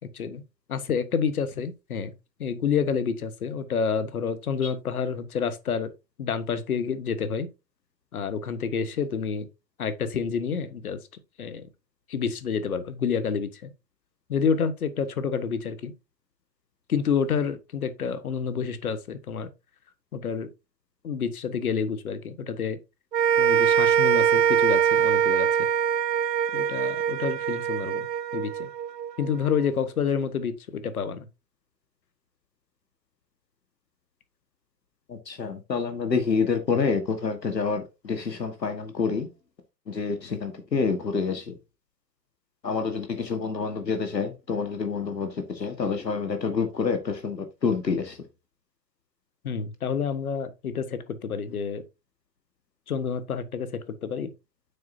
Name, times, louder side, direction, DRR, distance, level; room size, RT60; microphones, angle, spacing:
voice 1, 0.7-2.1 2.4-5.9 6.2-7.5 8.1-9.5 9.8-11.0 11.4-11.7 12.1-13.7 14.3-15.9 16.9-19.5 20.1-20.5 21.0-22.8 23.4-25.7 26.5-28.1 28.3-28.7 29.2-31.3 49.4-51.8 52.9-54.3, left 6 dB, 60° left, 1.3 m, -28 dB
sound 1, 23.1-29.5, right 9 dB, 80° right, 0.7 m, -23 dB
voice 2, 35.1-39.3 39.9-41.6 42.6-48.2, left 5 dB, 80° left, 1.6 m, -28 dB
8.5 x 6.8 x 2.7 m
figure-of-eight pair, 130°, 49 cm